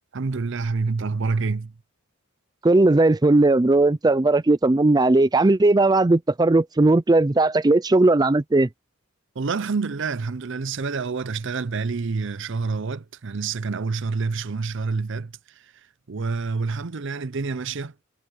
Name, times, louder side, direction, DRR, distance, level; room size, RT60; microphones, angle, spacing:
voice 1, 0.1-1.7 9.4-15.7 16.1-17.9, right 4 dB, 60° right, 0.6 m, -27 dB
voice 2, 2.6-8.7, right 2 dB, 20° right, 0.4 m, -18 dB
head